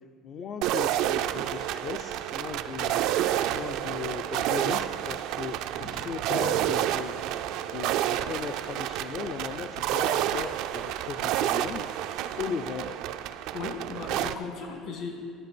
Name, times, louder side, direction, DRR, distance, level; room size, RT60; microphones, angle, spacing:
voice 1, 0.2-11.9 12.4-13.0 13.3-13.5 14.1-14.3, left 6 dB, 40° left, 6 dB, 0.4 m, -38 dB
sound 1, 0.6-14.3, right 12 dB, 65° right, 0.3 m, -29 dB
sound 2, 5.6-6.9, left 2 dB, 85° left, 1.2 m, -40 dB
voice 2, 13.5-15.2, left 4 dB, 60° left, 2 dB, 1.8 m, -36 dB
12.0 x 5.2 x 6.0 m, 2.2 s
cardioid pair, 150°, 0 cm